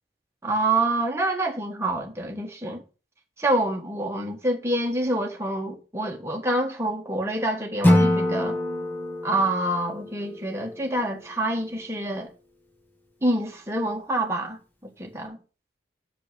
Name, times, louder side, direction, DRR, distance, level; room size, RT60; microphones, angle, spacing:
voice 1, 0.4-2.8 3.4-8.6 9.2-12.3 13.2-15.4, right 1 dB, 15° right, 1.3 m, -27 dB
Acoustic guitar / Strum, 7.8-11.0, left 1 dB, 10° left, 1.2 m, -24 dB
6.0 x 5.8 x 6.7 m
head